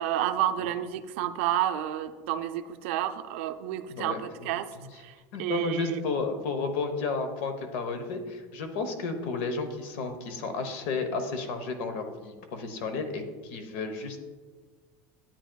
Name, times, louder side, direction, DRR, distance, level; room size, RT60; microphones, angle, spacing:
voice 1, 0.0-6.0, right 11 dB, 70° right, 10 dB, 0.5 m, -30 dB
voice 2, 3.9-4.5 4.8-4.9 5.3-14.2, left 4 dB, 65° left, 8 dB, 0.9 m, -32 dB
10.5 x 8.9 x 2.3 m, 1.5 s
cardioid pair, 180°, 7 cm